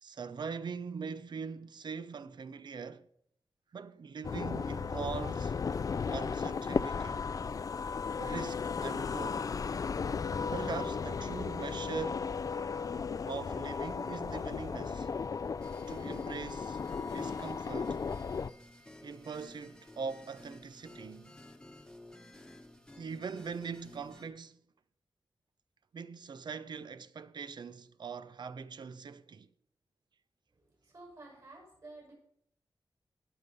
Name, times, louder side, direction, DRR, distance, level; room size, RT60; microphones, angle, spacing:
voice 1, 0.0-3.1 3.7-5.6 6.1-7.3 8.2-9.5 10.5-12.3 13.2-15.1 15.9-16.8 17.1-18.0 19.0-21.4 23.0-24.6 25.9-29.5, right 5 dB, 65° right, 0.6 m, -42 dB
sound 1, 4.2-18.5, left 5 dB, 45° left, 0.4 m, -35 dB
sound 2, 15.6-24.3, left 1 dB, 10° left, 1.1 m, -53 dB
voice 2, 30.5-32.1, right 2 dB, 50° right, 6.7 m, -52 dB
18.0 x 6.8 x 5.3 m
wide cardioid pair, 130°, 8 cm